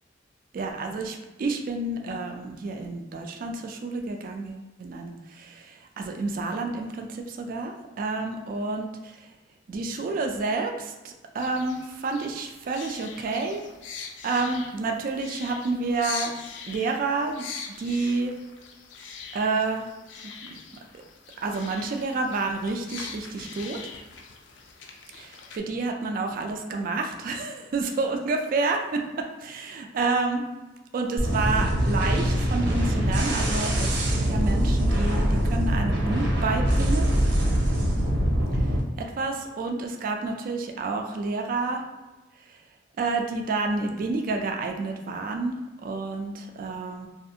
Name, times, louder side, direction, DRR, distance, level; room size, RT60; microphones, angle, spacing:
voice 1, 0.5-9.2 9.7-13.6 14.2-16.3 16.7-17.4 17.8-18.3 19.3-19.9 21.4-23.8 25.1-30.4 30.9-37.1 39.0-41.8 43.0-47.1, right 3 dB, 50° right, 3 dB, 0.3 m, -29 dB
sound 1, 11.4-25.6, left 6 dB, 75° left, 0.3 m, -42 dB
sound 2, 31.2-38.8, equal, 75° right, 0.7 m, -23 dB
2.5 x 2.4 x 2.7 m, 1.1 s
head